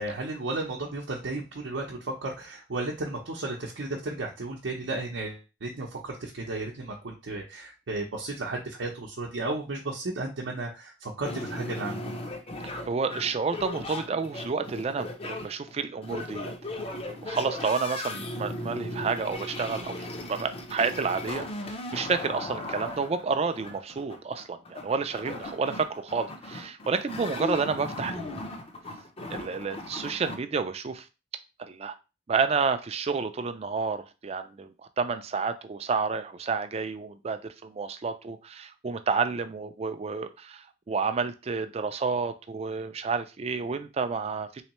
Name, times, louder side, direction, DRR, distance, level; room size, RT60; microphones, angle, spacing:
voice 1, 0.0-12.1, right 2 dB, 85° right, 0.7 m, -34 dB
sound 1, 11.3-30.4, left 1 dB, 35° left, 0.6 m, -37 dB
voice 2, 12.6-21.5 21.9-28.4 29.3-31.1 31.6-31.9 32.3-34.7 35.0-44.6, right 5 dB, 35° right, 0.4 m, -30 dB
3.6 x 3.2 x 3.0 m
head